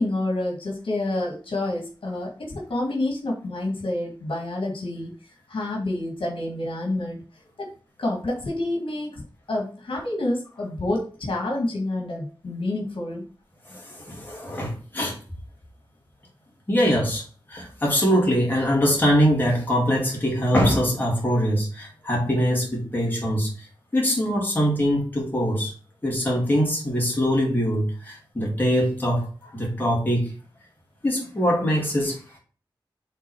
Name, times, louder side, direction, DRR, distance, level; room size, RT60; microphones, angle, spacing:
voice 1, 0.0-5.1 5.5-7.2 7.6-7.7 8.0-9.2 9.5-13.3, left 1 dB, 75° left, 1.8 m, -28 dB
voice 2, 13.7-15.2 16.7-25.7 26.0-30.3 31.0-32.4, equal, 20° left, 2.9 m, -23 dB
6.0 x 4.0 x 4.5 m
wide cardioid pair, 95°, 9 cm